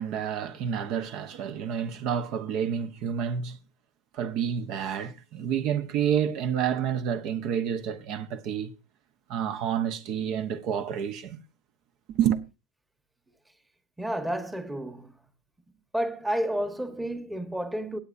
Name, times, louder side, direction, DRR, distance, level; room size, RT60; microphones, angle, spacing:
voice 1, 0.0-3.6 4.1-8.7 9.3-11.4 12.1-12.4, right 8 dB, 50° right, 1.0 m, -29 dB
voice 2, 14.0-15.1 15.9-18.0, right 1 dB, 5° right, 1.2 m, -30 dB
18.0 x 8.7 x 2.6 m
supercardioid pair, 120°, 0 cm